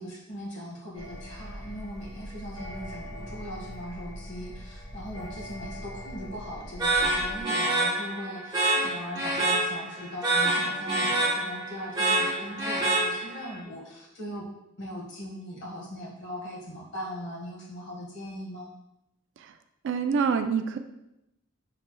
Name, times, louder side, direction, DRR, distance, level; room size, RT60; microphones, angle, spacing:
voice 1, 0.0-14.5 14.8-18.7, equal, 60° left, -4 dB, 1.5 m, -39 dB
sound 1, 0.9-7.4, equal, 80° left, 0.9 m, -41 dB
sound 2, 6.8-13.5, right 2 dB, 20° right, 0.9 m, -27 dB
voice 2, 19.8-20.8, right 5 dB, 60° right, 8 dB, 0.3 m, -25 dB
6.5 x 3.1 x 2.2 m, 0.87 s
head